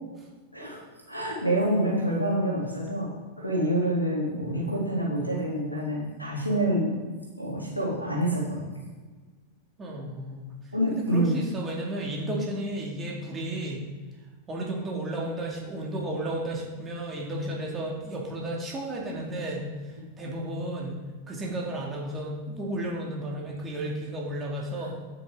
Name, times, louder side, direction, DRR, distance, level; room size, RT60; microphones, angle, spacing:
voice 1, 0.5-3.1 3.4-7.0 7.4-8.6 10.7-11.4, right 1 dB, 90° right, -5 dB, 3.1 m, -27 dB
voice 2, 9.8-10.5 10.9-13.8 14.5-25.0, right 1 dB, 20° right, -2 dB, 2.3 m, -33 dB
9.4 x 9.0 x 3.8 m, 1.4 s
figure-of-eight pair, 90°, 0 cm